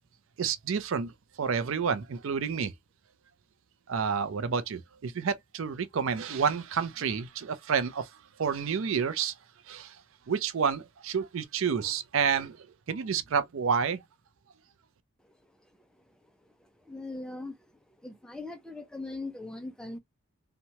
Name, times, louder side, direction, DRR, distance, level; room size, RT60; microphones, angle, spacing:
voice 1, 0.4-2.7 3.9-8.1 8.4-9.3 9.7-10.0 10.3-14.0, right 6 dB, 70° right, 0.4 m, -29 dB
voice 2, 15.8-16.1 16.6-17.6 18.0-20.0, left 2 dB, 5° left, 0.4 m, -40 dB
2.9 x 2.2 x 2.7 m
head